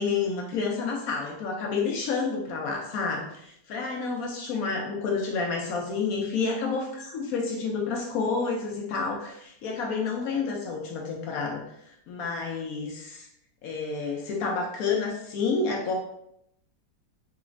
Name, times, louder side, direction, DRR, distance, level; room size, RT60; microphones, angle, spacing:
voice 1, 0.0-13.3 13.6-15.9, left 4 dB, 70° left, 0 dB, 0.8 m, -29 dB
4.0 x 2.9 x 2.5 m, 0.76 s
omnidirectional pair, 2.0 m